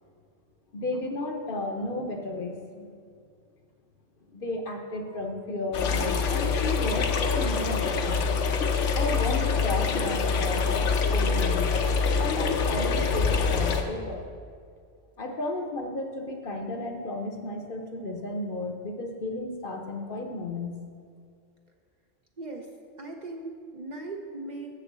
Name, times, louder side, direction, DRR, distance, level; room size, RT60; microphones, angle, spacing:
voice 1, 0.7-3.0 4.3-8.4 8.9-11.7 12.2-14.3 15.2-20.7, left 2 dB, 50° left, 3 dB, 0.9 m, -33 dB
sound 1, 5.7-13.8, left 5 dB, 75° left, 1.0 m, -25 dB
voice 2, 22.4-22.7 23.0-24.8, right 2 dB, 45° right, 1 dB, 0.7 m, -38 dB
7.0 x 6.7 x 7.3 m, 2.2 s
omnidirectional pair, 1.3 m